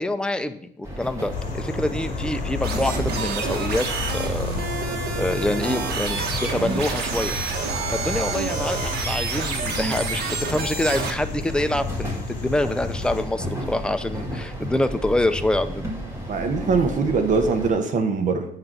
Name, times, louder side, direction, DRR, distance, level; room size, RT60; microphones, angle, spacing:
voice 1, 0.0-4.5 5.1-7.3 7.9-15.9, left 1 dB, 5° left, 9 dB, 0.5 m, -26 dB
sound 1, 0.8-17.7, equal, 15° right, 2.5 m, -34 dB
sound 2, 1.3-13.2, left 4 dB, 50° left, 2.3 m, -33 dB
sound 3, 2.6-11.1, right 4 dB, 70° right, 1.4 m, -28 dB
voice 2, 16.3-18.5, right 4 dB, 50° right, 6 dB, 1.0 m, -22 dB
7.8 x 3.9 x 5.9 m, 0.68 s
cardioid pair, 110°, 17 cm